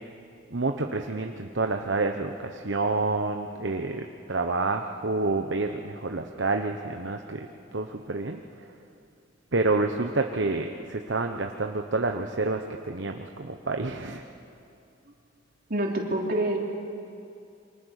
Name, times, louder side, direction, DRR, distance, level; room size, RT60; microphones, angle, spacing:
voice 1, 0.5-8.4 9.5-14.2, right 3 dB, 70° right, 4 dB, 1.1 m, -28 dB
voice 2, 15.7-16.6, right 1 dB, 50° right, 0 dB, 3.5 m, -26 dB
28.5 x 25.0 x 6.6 m, 2.5 s
head